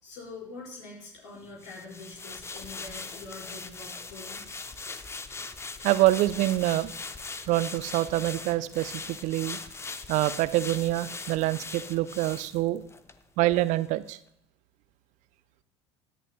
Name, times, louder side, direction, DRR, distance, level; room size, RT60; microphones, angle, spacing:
voice 1, 0.0-4.5, left 3 dB, 65° left, -4 dB, 4.9 m, -44 dB
sound 1, 1.6-13.2 13.5-13.7, left 3 dB, 15° left, 0.8 m, -40 dB
voice 2, 5.8-6.9 7.5-9.6 10.1-12.8 13.4-14.2, right 16 dB, 55° right, 16 dB, 0.6 m, -26 dB
18.0 x 11.0 x 2.3 m, 0.73 s
figure-of-eight pair, 65°, 15 cm